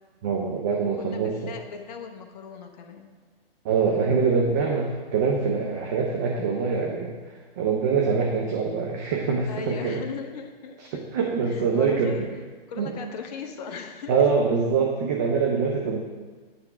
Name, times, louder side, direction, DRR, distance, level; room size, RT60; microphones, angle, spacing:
voice 1, 0.2-1.3 3.6-7.2 7.6-10.0 10.9-12.3 12.8-12.9 14.1-16.0, right 5 dB, 20° right, 0 dB, 0.4 m, -24 dB
voice 2, 0.7-3.1 9.5-11.0 11.5-12.2 12.7-14.3, left 6 dB, 45° left, 5 dB, 0.7 m, -38 dB
8.4 x 3.3 x 5.6 m, 1.4 s
hypercardioid pair, 130°, 30 cm